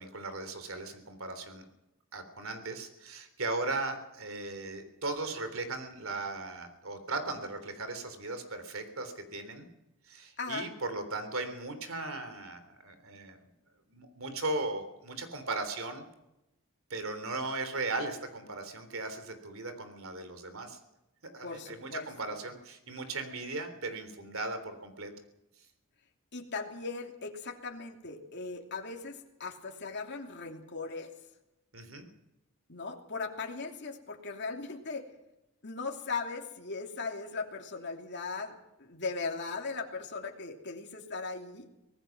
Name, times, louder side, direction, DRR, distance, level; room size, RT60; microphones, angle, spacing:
voice 1, 0.0-1.7 2.1-9.7 10.1-13.5 13.9-16.1 16.9-20.8 21.3-25.1 31.7-32.1, right 2 dB, 65° right, 9 dB, 3.5 m, -37 dB
voice 2, 21.4-22.1 26.3-31.1 32.7-35.0 35.6-38.5 38.8-41.6, left 4 dB, 50° left, 1 dB, 2.9 m, -38 dB
24.5 x 19.0 x 6.1 m, 0.93 s
head